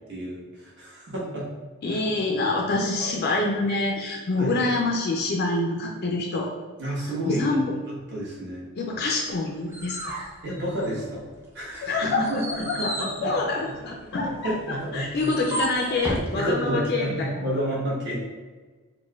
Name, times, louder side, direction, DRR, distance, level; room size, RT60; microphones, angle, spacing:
voice 1, 0.1-1.5 1.9-2.0 3.0-3.1 4.4-4.5 6.8-7.7 8.1-8.7 10.4-11.3 11.5-13.3 14.2-15.3 16.0-18.2, equal, 55° right, -5 dB, 1.0 m, -30 dB
voice 2, 1.8-6.5 7.2-7.7 8.8-10.2 11.8-12.4 12.7-17.5, left 2 dB, 50° left, -1 dB, 0.3 m, -26 dB
sound 1, 9.3-11.3 11.7-16.3, right 1 dB, 10° right, 0.4 m, -35 dB
4.3 x 2.2 x 2.3 m, 1.4 s
head